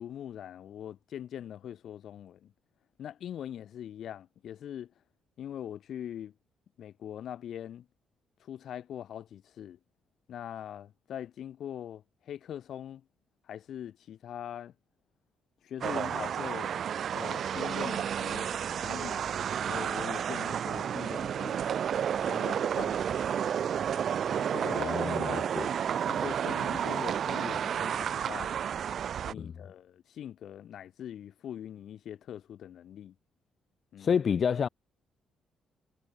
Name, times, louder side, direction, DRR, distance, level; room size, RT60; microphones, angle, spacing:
voice 1, 0.0-2.5 3.0-4.9 5.4-6.3 6.8-7.9 8.4-9.8 10.3-13.0 13.5-14.7 15.6-16.7 17.1-19.2 19.7-21.7 22.2-23.3 24.3-24.9 25.2-25.4 26.1-28.5 29.2-33.1 33.9-34.1, left 10 dB, 65° left, 7.9 m, -42 dB
sound 1, 15.8-29.3, right 8 dB, 60° right, 1.4 m, -31 dB
voice 2, 24.7-25.7 29.3-29.5 34.0-34.7, left 7 dB, 50° left, 4.0 m, -29 dB
cardioid pair, 90°, 0 cm